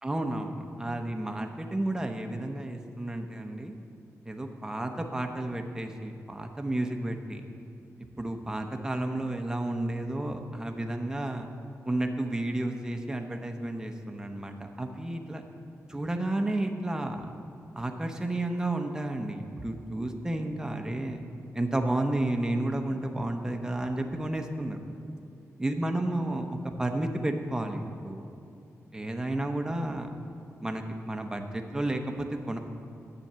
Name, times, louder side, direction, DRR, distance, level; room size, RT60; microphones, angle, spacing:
voice 1, 0.0-3.8 4.3-7.4 8.2-11.5 11.9-15.4 15.9-17.2 17.7-21.2 21.5-24.8 25.6-28.3 28.9-30.1 30.6-32.6, right 1 dB, 10° right, 4 dB, 0.8 m, -32 dB
10.5 x 7.7 x 6.8 m, 2.6 s
wide cardioid pair, 140°, 6 cm